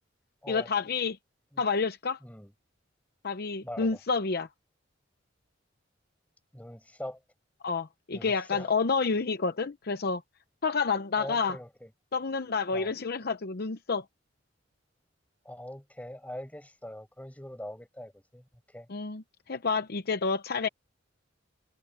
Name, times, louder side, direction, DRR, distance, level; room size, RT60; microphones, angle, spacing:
voice 1, 0.5-1.2 1.6-2.2 3.2-4.5 7.6-10.2 10.6-11.6 12.1-14.0 18.9-20.7, left 4 dB, 55° left, 0.7 m, -29 dB
voice 2, 3.6-4.0 6.5-7.2 8.1-8.7 11.2-11.9 12.7-12.9 15.4-18.4 18.7-18.9, left 1 dB, 10° left, 5.8 m, -42 dB
head